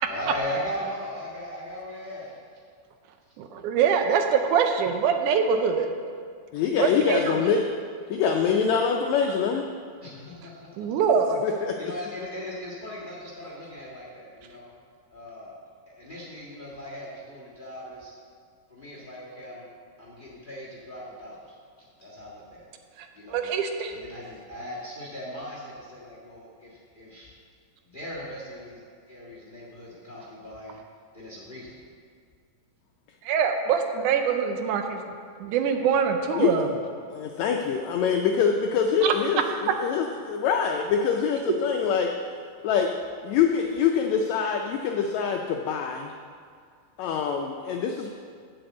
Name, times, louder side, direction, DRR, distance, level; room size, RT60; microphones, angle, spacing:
voice 1, 0.0-2.3 10.0-10.7 11.8-14.6 15.1-15.5 15.9-18.1 18.7-19.7 20.0-21.4 22.0-22.7 23.1-23.5 23.9-27.3 27.8-28.8 29.1-30.8 31.1-31.7, equal, 25° left, -5 dB, 1.0 m, -38 dB
voice 2, 3.4-5.9 6.8-7.5 10.8-11.4 23.0-24.0 33.2-35.0 35.4-36.7 39.0-39.1, right 6 dB, 75° right, 5 dB, 2.0 m, -24 dB
voice 3, 6.5-7.6 8.1-9.6 11.4-11.7 36.3-36.5 37.1-42.1 42.6-43.0 43.2-46.1 47.0-48.1, left 6 dB, 90° left, 3 dB, 1.6 m, -24 dB
7.7 x 7.0 x 7.9 m, 2.1 s
omnidirectional pair, 3.8 m